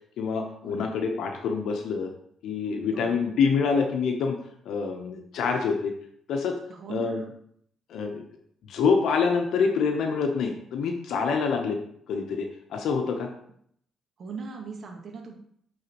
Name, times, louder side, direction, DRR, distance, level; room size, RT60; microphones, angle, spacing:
voice 1, 0.2-2.1 2.4-4.4 4.6-5.9 6.3-6.6 6.9-7.2 7.9-8.2 8.7-11.8 12.1-13.3, left 5 dB, 75° left, 3 dB, 0.7 m, -26 dB
voice 2, 6.7-7.3 14.2-15.3, right 4 dB, 55° right, 1 dB, 1.2 m, -39 dB
8.9 x 3.9 x 2.9 m, 0.67 s
cardioid pair, 90°, 0 cm